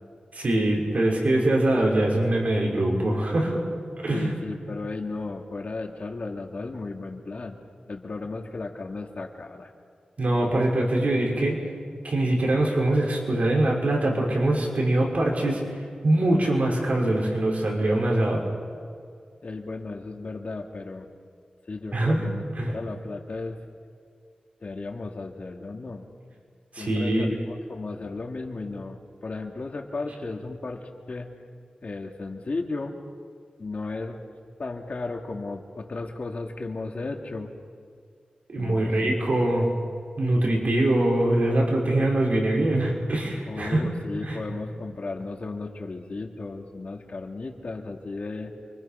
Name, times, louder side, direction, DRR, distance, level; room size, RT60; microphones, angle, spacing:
voice 1, 0.3-3.7 4.0-4.3 10.2-11.6 12.0-15.6 16.0-18.5 21.9-22.3 22.6-22.7 26.7-27.3 38.5-39.7 40.2-43.8 44.2-44.4, right 1 dB, 60° right, -2 dB, 5.7 m, -23 dB
voice 2, 4.1-7.6 7.9-9.7 19.4-21.1 21.7-23.6 24.6-26.1 26.8-31.3 31.8-32.9 33.6-34.2 34.6-37.5 38.6-39.1 43.5-48.5, left 3 dB, 55° left, 2 dB, 2.7 m, -35 dB
29.0 x 24.5 x 5.9 m, 2.2 s
wide cardioid pair, 80°, 3 cm